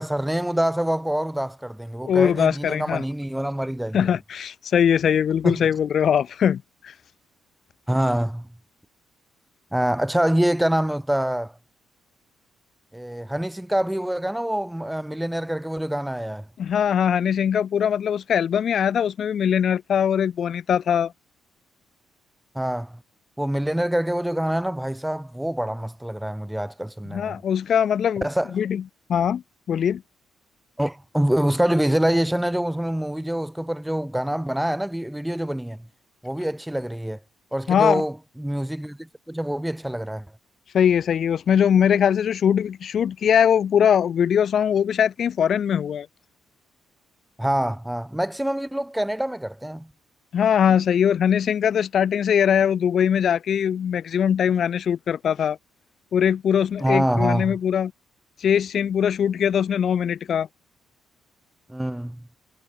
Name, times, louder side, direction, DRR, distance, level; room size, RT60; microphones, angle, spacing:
voice 1, 0.0-4.1 5.4-5.7 7.9-8.5 9.7-11.5 12.9-16.4 22.5-23.0 23.4-27.4 28.2-28.5 30.8-35.8 36.2-37.2 37.5-39.0 39.3-40.2 47.4-49.9 56.8-57.6 61.7-62.2, right 1 dB, 5° right, 0.4 m, -25 dB
voice 2, 2.0-3.0 3.9-6.9 16.6-21.1 27.1-28.3 28.5-28.8 29.1-29.4 29.7-30.0 37.7-38.0 40.7-46.1 50.3-55.6 56.1-57.9 58.4-60.5, left 8 dB, 60° left, 1.7 m, -21 dB
cardioid pair, 90°, 0 cm